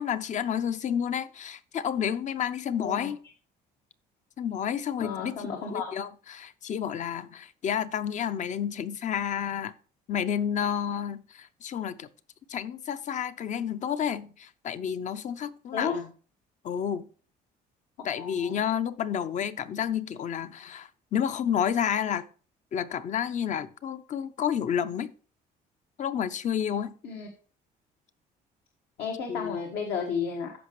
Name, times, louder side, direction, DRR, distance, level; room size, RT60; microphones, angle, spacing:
voice 1, 0.0-3.2 4.4-9.7 10.1-12.1 12.5-16.1 16.6-17.1 18.0-22.3 22.7-25.1 26.0-26.9 29.3-29.6, left 8 dB, 45° left, 0.6 m, -30 dB
voice 2, 5.0-5.9 15.7-16.0 18.1-18.6 27.0-27.3 29.0-30.5, left 6 dB, 75° left, 1.5 m, -33 dB
14.0 x 5.1 x 3.1 m
cardioid pair, 110°, 17 cm